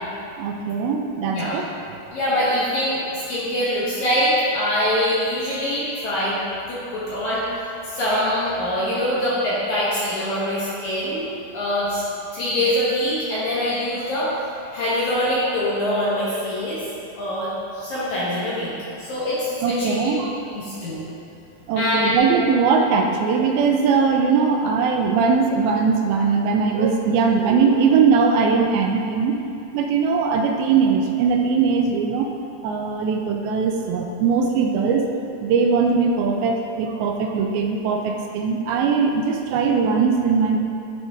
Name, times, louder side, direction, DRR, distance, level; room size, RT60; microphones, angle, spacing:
voice 1, 0.4-1.7 19.6-20.3 21.7-29.4 29.7-32.3 32.6-35.1 35.4-40.6, right 5 dB, 80° right, 3 dB, 2.2 m, -20 dB
voice 2, 2.1-6.4 6.7-11.3 11.5-12.0 12.3-16.8 17.2-18.7 19.0-20.0 20.5-21.0 21.7-22.2, left 1 dB, 65° left, -9 dB, 2.0 m, -24 dB
11.0 x 3.9 x 3.6 m, 2.7 s
omnidirectional pair, 4.5 m